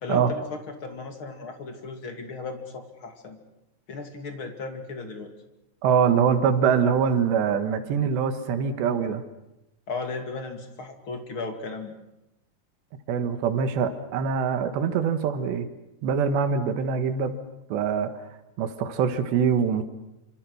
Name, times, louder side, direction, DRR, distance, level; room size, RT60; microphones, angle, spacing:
voice 1, 0.0-3.4 3.9-5.3 9.9-11.9, left 4 dB, 35° left, 5 dB, 2.6 m, -35 dB
voice 2, 5.8-9.2 13.1-15.7 16.0-17.4 17.7-18.1 18.6-19.8, right 7 dB, 85° right, 9 dB, 3.8 m, -24 dB
26.5 x 26.0 x 6.5 m, 0.90 s
omnidirectional pair, 4.8 m